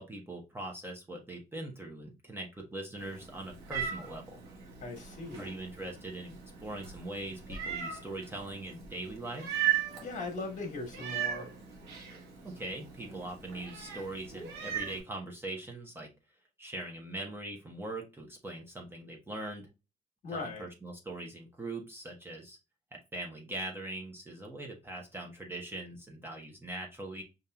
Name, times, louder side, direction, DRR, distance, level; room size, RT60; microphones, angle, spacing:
voice 1, 0.0-4.4 5.4-6.3 6.6-9.5 12.4-16.1 16.6-19.7 20.3-22.6 22.9-27.2, right 2 dB, 15° right, 1.0 m, -41 dB
Meow, 3.0-15.0, right 10 dB, 90° right, 1.4 m, -38 dB
voice 2, 4.8-5.5 10.0-11.5 20.2-20.7, left 3 dB, 50° left, 1.3 m, -39 dB
5.3 x 2.7 x 2.2 m
cardioid pair, 110°, 17 cm